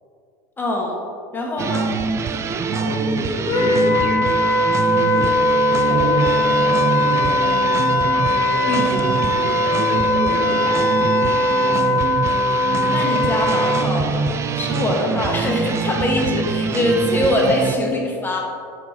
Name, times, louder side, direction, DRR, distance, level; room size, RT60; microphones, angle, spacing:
voice 1, 0.6-1.0 1.3-1.9 8.7-9.2 12.9-14.3 14.5-18.4, left 1 dB, 20° left, -1 dB, 1.3 m, -22 dB
sound 1, 1.6-17.8, right 5 dB, 25° right, 0.4 m, -24 dB
voice 2, 2.7-4.5 4.9-8.4 8.9-12.3 15.0-15.2, right 1 dB, 70° right, -1 dB, 1.6 m, -31 dB
Wind instrument woodwind instrument, 3.5-13.9, left 1 dB, 35° left, 1.2 m, -19 dB
7.3 x 4.6 x 3.6 m, 2.2 s
hypercardioid pair, 95°, 11 cm